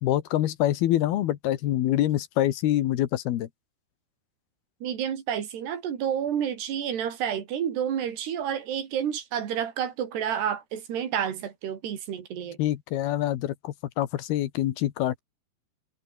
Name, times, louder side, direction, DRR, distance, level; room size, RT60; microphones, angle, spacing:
voice 1, 0.0-3.5 12.6-15.2, left 13 dB, 75° left, 3.2 m, -25 dB
voice 2, 4.8-12.6, right 9 dB, 85° right, 5.0 m, -30 dB
omnidirectional pair, 4.6 m